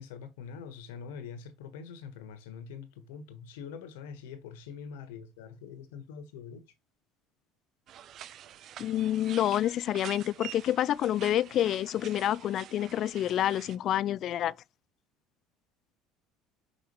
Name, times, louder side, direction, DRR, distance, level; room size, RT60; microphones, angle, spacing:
voice 1, 0.0-6.6, left 6 dB, 85° left, 1.4 m, -44 dB
sound 1, 7.9-13.8, right 11 dB, 55° right, 0.7 m, -47 dB
voice 2, 8.8-14.6, left 12 dB, 55° left, 0.3 m, -28 dB
5.9 x 5.6 x 3.0 m
supercardioid pair, 85°, 0 cm